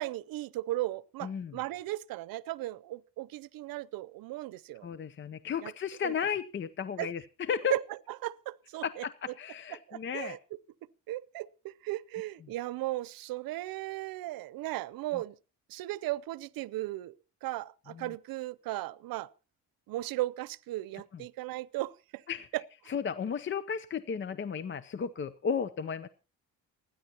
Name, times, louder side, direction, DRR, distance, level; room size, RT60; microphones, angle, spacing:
voice 1, 0.0-4.9 5.6-5.7 6.0-6.1 7.0-7.1 7.7-7.8 8.2-9.0 9.9-10.4 11.1-15.3 15.7-17.1 17.4-19.3 19.9-22.2, right 17 dB, 80° right, 0.7 m, -36 dB
voice 2, 1.2-1.6 4.8-7.8 8.8-10.4 12.4-12.5 15.1-15.2 17.9-18.2 21.1-21.3 22.3-22.5 22.9-26.1, left 7 dB, 35° left, 0.7 m, -34 dB
29.5 x 10.5 x 2.9 m
cardioid pair, 105°, 35 cm